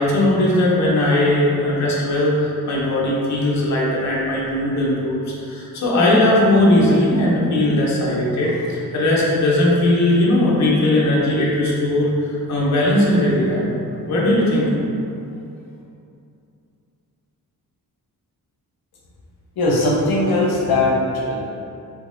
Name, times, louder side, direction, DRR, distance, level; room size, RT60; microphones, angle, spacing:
voice 1, 0.0-13.7 14.1-14.7, left 1 dB, 50° left, -5 dB, 0.7 m, -18 dB
voice 2, 19.6-21.3, left 2 dB, 90° left, -4 dB, 0.6 m, -19 dB
3.8 x 2.7 x 2.6 m, 2.6 s
wide cardioid pair, 160°, 36 cm